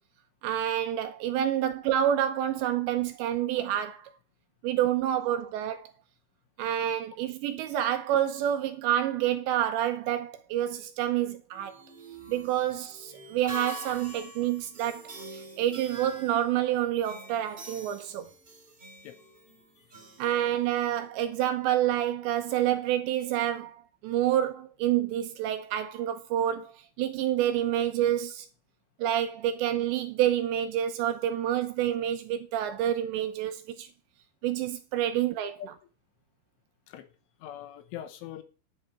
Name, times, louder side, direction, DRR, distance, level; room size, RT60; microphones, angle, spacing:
voice 1, 0.4-4.1 4.6-5.9 6.6-11.8 12.3-18.3 20.2-23.7 24.0-28.5 29.0-33.9 34.4-35.6, right 11 dB, 80° right, 2.8 m, -28 dB
sound 1, 11.5-21.1, right 1 dB, 50° right, 0.6 m, -45 dB
voice 2, 37.4-38.4, left 11 dB, 80° left, 3.4 m, -42 dB
10.5 x 9.9 x 4.8 m
omnidirectional pair, 5.7 m